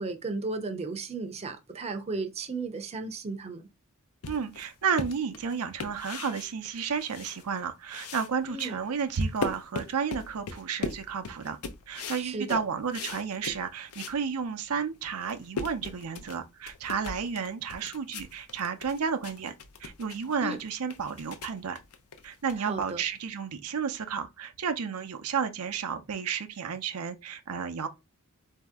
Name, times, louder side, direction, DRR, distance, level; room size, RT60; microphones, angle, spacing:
voice 1, 0.0-3.6 8.4-8.8 12.2-12.6 20.4-20.6 22.6-23.0, right 3 dB, 30° right, 0.5 m, -34 dB
sound 1, 4.2-7.6 7.9-14.2 14.6-14.7 15.1-23.2, left 4 dB, 80° left, 0.6 m, -39 dB
voice 2, 4.3-11.6 11.9-19.5 19.8-21.8 22.2-27.9, right 6 dB, 85° right, 0.6 m, -32 dB
4.1 x 2.7 x 3.5 m
head